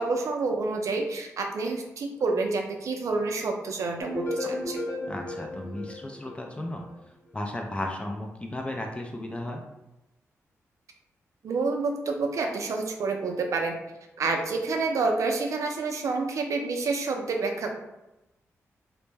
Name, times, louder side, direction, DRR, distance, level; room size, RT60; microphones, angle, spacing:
voice 1, 0.0-4.8 11.4-13.8 14.2-17.7, right 3 dB, 70° right, 3 dB, 0.4 m, -28 dB
sound 1, 4.0-6.9, left 1 dB, 90° left, 0.9 m, -34 dB
voice 2, 5.1-6.8 7.3-9.6, left 1 dB, 20° left, 1 dB, 0.4 m, -34 dB
2.1 x 2.0 x 3.2 m, 0.95 s
cardioid pair, 65°, 6 cm